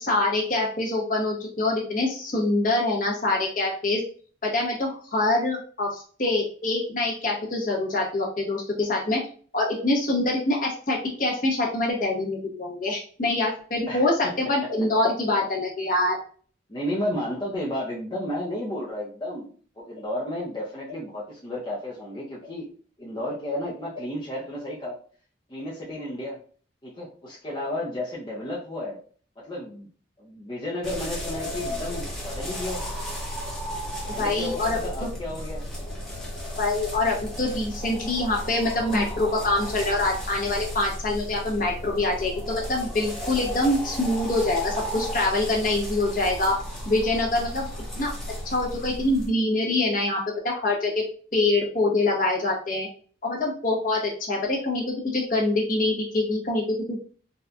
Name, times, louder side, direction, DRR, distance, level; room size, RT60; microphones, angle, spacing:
voice 1, 0.0-4.0 4.5-9.2 9.5-16.2 34.2-34.8 36.6-46.6 46.8-47.6 47.9-48.1 48.4-51.0 51.3-52.9 53.2-57.0, left 2 dB, 45° left, -2 dB, 1.1 m, -25 dB
voice 2, 13.9-14.4 16.7-19.5 19.8-22.7 23.0-25.0 25.5-26.4 26.8-29.0 29.4-29.9 30.2-32.8 34.0-35.7, left 1 dB, 25° left, -6 dB, 0.6 m, -32 dB
sound 1, 30.8-49.3, equal, 5° left, 0.8 m, -34 dB
4.0 x 2.6 x 2.3 m, 0.43 s
head